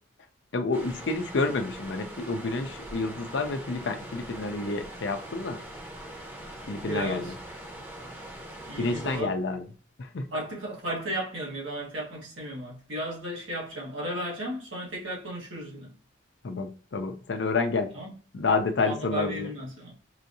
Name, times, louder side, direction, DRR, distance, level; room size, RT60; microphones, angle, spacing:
voice 1, 0.5-5.6 6.7-7.3 8.8-9.7 10.0-10.3 16.4-17.9 18.3-19.5, left 3 dB, 65° left, 0.5 m, -29 dB
sound 1, 0.7-9.2, right 1 dB, 10° right, 0.8 m, -42 dB
voice 2, 6.8-7.3 8.7-9.3 10.3-15.9 17.9-18.1 18.8-19.9, right 1 dB, 85° right, 1.6 m, -34 dB
5.5 x 2.7 x 2.7 m
head